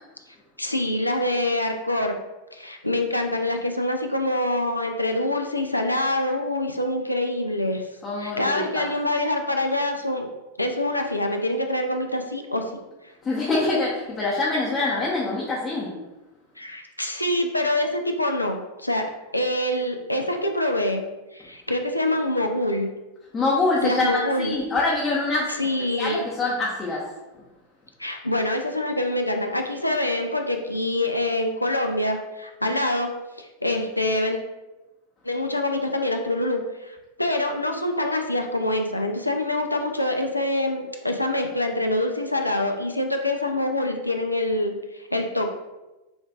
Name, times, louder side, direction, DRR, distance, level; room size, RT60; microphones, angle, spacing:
voice 1, 0.6-2.1 2.5-7.8 8.2-10.3 10.6-12.6 16.6-21.0 21.3-22.9 23.8-24.6 25.6-26.2 28.0-33.1 33.4-34.4 35.2-45.5, left 1 dB, 85° left, 4 dB, 0.4 m, -25 dB
voice 2, 8.0-8.9 13.2-16.0 23.3-25.6 26.0-27.1, left 2 dB, 20° left, -5 dB, 0.7 m, -25 dB
6.0 x 2.5 x 2.3 m, 1.1 s
figure-of-eight pair, 90°, 0 cm